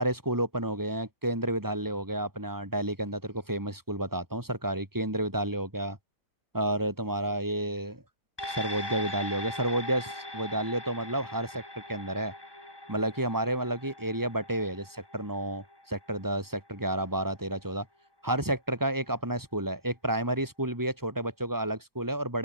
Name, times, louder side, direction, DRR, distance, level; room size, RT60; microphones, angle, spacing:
voice 1, 0.0-6.0 6.5-8.0 8.5-11.6 11.9-12.3 12.9-17.9 18.2-22.4, right 1 dB, 10° right, 6.1 m, -31 dB
sound 1, 8.4-17.1 17.5-17.6, left 1 dB, 15° left, 3.3 m, -41 dB
open air
omnidirectional pair, 1.8 m